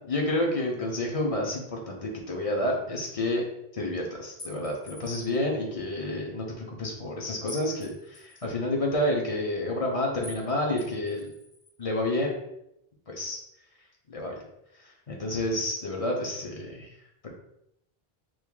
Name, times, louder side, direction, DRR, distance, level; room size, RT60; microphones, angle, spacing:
voice 1, 0.1-3.4 3.7-11.3 11.8-12.3 13.1-13.4 14.1-14.3 14.8-16.9 17.2-17.3, left 1 dB, 40° left, -1 dB, 0.7 m, -29 dB
sound 1, 4.4-5.4 7.5-8.5 10.2-10.5 10.8-11.7, left 1 dB, 70° left, 1.6 m, -46 dB
3.1 x 2.6 x 3.7 m, 0.80 s
omnidirectional pair, 1.0 m